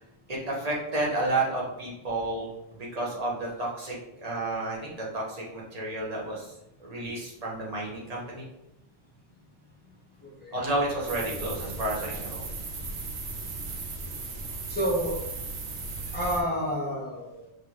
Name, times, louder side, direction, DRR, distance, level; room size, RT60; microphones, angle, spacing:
voice 1, 0.3-6.5 6.8-8.4 10.5-12.4, right 2 dB, 40° right, -4 dB, 1.2 m, -31 dB
voice 2, 10.2-10.6 14.7-15.2 16.1-17.5, equal, 10° left, -4 dB, 1.1 m, -30 dB
sound 1, 11.0-16.4, right 3 dB, 85° right, 1.0 m, -36 dB
5.1 x 2.9 x 2.9 m, 0.85 s
omnidirectional pair, 1.1 m